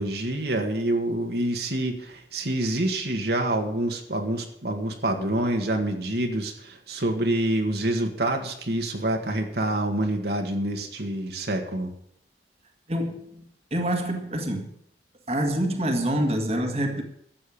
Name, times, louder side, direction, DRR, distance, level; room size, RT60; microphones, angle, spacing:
voice 1, 0.0-11.9, right 1 dB, 65° right, 1.8 m, -27 dB
voice 2, 12.9-14.7 15.3-17.0, right 1 dB, 35° right, 1.8 m, -26 dB
13.5 x 7.8 x 8.6 m
head